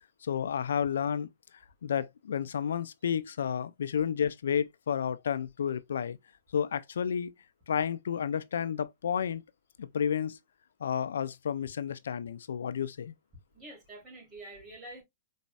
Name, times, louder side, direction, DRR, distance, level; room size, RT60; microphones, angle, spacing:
voice 1, 0.2-1.3 1.8-6.2 6.5-7.3 7.7-9.4 9.8-10.4 10.8-13.1, left 8 dB, 85° left, 0.4 m, -31 dB
voice 2, 13.5-15.0, right 2 dB, 15° right, 3.1 m, -47 dB
5.3 x 4.1 x 2.3 m
hypercardioid pair, 150°, 0 cm